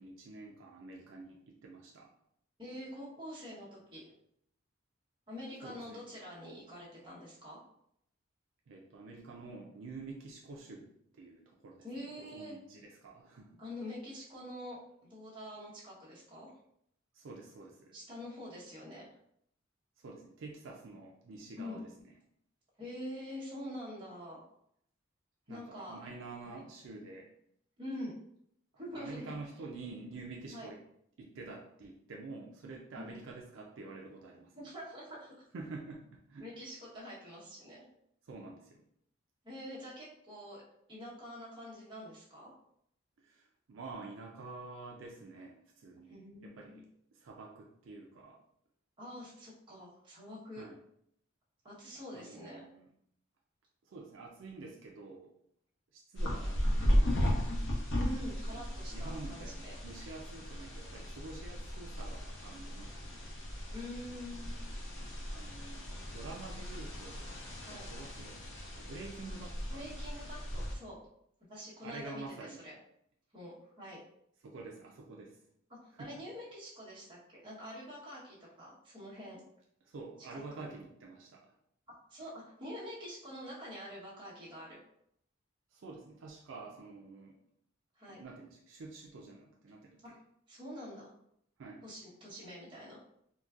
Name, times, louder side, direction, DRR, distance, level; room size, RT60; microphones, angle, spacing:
voice 1, 0.0-2.1 5.6-6.0 8.7-13.6 17.1-18.0 20.0-22.1 25.5-27.3 28.9-30.8 31.2-34.5 35.5-36.5 38.2-38.8 43.2-46.8 47.1-48.4 50.6-50.8 52.1-52.9 53.9-55.3 55.9-56.9 58.5-63.3 65.3-68.4 68.7-69.8 71.8-72.7 74.4-75.4 75.9-76.2 79.8-81.5 85.7-87.4 88.1-90.2 91.6-91.8, right 3 dB, 65° right, -1 dB, 0.4 m, -48 dB
voice 2, 2.6-4.0 5.3-7.6 11.8-12.6 13.6-16.5 17.9-19.1 21.6-21.8 22.8-24.4 25.5-26.0 26.4-26.6 27.8-28.1 28.7-29.3 30.5-30.7 32.9-33.1 34.5-35.3 36.4-37.9 39.4-40.6 40.9-42.5 46.1-46.8 49.0-50.6 51.6-52.6 58.0-59.7 63.7-64.6 67.6-67.9 69.7-71.0 71.5-72.7 73.3-74.0 75.7-79.4 80.6-80.7 81.9-84.8 87.9-88.2 90.0-90.1 90.5-91.1 91.8-93.0, left 1 dB, 25° right, -7 dB, 1.0 m, -46 dB
sound 1, 56.2-70.8, equal, 60° left, 0.8 m, -36 dB
3.9 x 2.2 x 2.4 m, 0.72 s
head